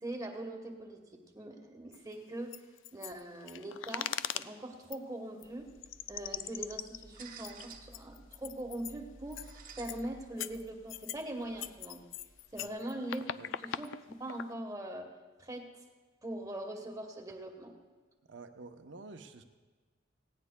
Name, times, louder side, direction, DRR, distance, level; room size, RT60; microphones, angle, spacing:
voice 1, 0.0-2.6 2.9-5.7 6.1-9.5 9.8-12.0 12.5-13.2 13.6-15.1 15.4-15.7 16.2-17.7, right 1 dB, 20° right, 3 dB, 1.2 m, -42 dB
sound 1, 1.9-2.0 2.5-4.5 4.9-5.0 5.4-5.5 5.8-8.9 9.3-9.5 9.8-10.0 10.4-11.2 11.6-14.5, left 10 dB, 85° left, 0.4 m, -40 dB
sound 2, 5.4-12.7, right 3 dB, 45° right, 1.0 m, -55 dB
voice 2, 18.2-19.4, right 3 dB, 70° right, 7 dB, 0.8 m, -50 dB
18.5 x 16.5 x 2.2 m, 1.4 s
head